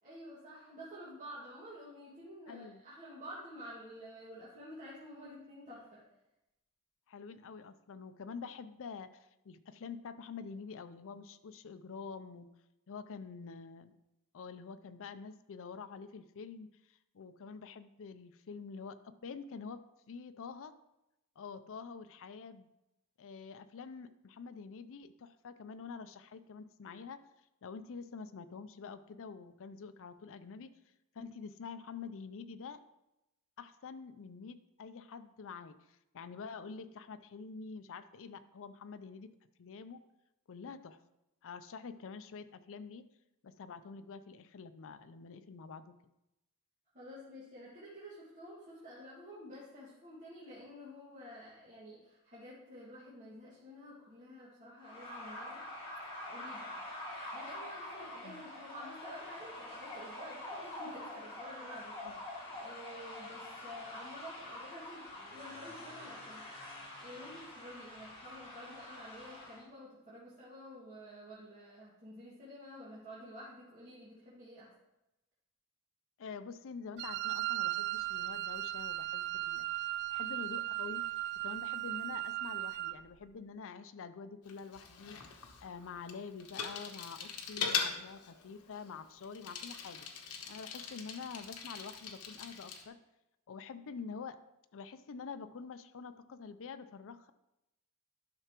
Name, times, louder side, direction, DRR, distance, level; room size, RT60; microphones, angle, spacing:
voice 1, 0.0-6.0 46.9-55.7 55.9-56.7 57.3-62.1 62.5-66.5 67.0-74.7, equal, 35° right, -9 dB, 1.9 m, -50 dB
voice 2, 2.5-2.8 7.1-12.5 12.9-13.9 14.3-19.8 20.1-20.7 21.4-22.7 23.2-27.2 27.6-30.7 31.1-32.8 33.6-39.3 39.6-40.0 40.5-41.0 41.4-43.0 43.4-46.0 58.2-58.4 62.0-62.2 76.2-81.0 81.3-90.1 90.5-93.0 93.5-94.4 94.7-97.3, left 5 dB, 65° left, 11 dB, 0.5 m, -47 dB
sound 1, 54.8-69.6, left 1 dB, 25° left, 1.9 m, -46 dB
Wind instrument woodwind instrument, 77.0-83.0, right 16 dB, 50° right, 0.3 m, -37 dB
Bicycle, 84.5-92.9, left 6 dB, 90° left, 1.0 m, -41 dB
11.5 x 5.8 x 3.0 m, 0.92 s
head